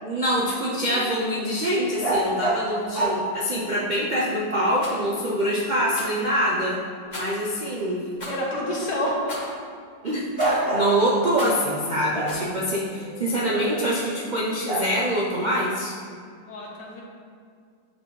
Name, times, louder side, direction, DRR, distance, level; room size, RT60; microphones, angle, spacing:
voice 1, 0.0-6.8 7.1-8.1 10.0-15.9, equal, 60° right, -6 dB, 0.4 m, -25 dB
sound 1, 0.9-1.1 2.0-3.3 5.2-5.3 10.4-11.4 12.1-14.0 14.6-14.9, right 1 dB, 40° right, 1.3 m, -27 dB
Rattle, 4.7-5.0 5.9-6.2 7.1-7.4 8.2-8.4 9.3-9.6 10.4-10.7 11.3-11.7 12.2-12.5, left 1 dB, 25° left, 1.5 m, -36 dB
voice 2, 8.3-9.2 16.5-17.0, equal, 85° left, -3 dB, 1.8 m, -28 dB
9.0 x 4.2 x 3.2 m, 2.2 s
omnidirectional pair, 1.8 m